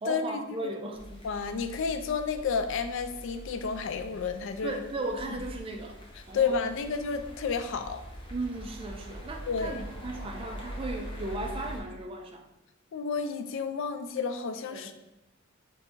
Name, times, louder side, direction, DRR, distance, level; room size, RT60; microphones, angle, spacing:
voice 1, 0.0-1.0 4.6-6.0 6.3-6.6 8.3-12.5 14.7-14.9, right 2 dB, 25° right, 3 dB, 0.4 m, -36 dB
sound 1, 0.9-11.8, equal, 25° left, 0.7 m, -43 dB
voice 2, 1.2-4.8 6.3-8.0 9.5-9.8 12.9-14.9, left 5 dB, 60° left, 8 dB, 0.3 m, -31 dB
3.5 x 2.6 x 4.3 m, 0.99 s
head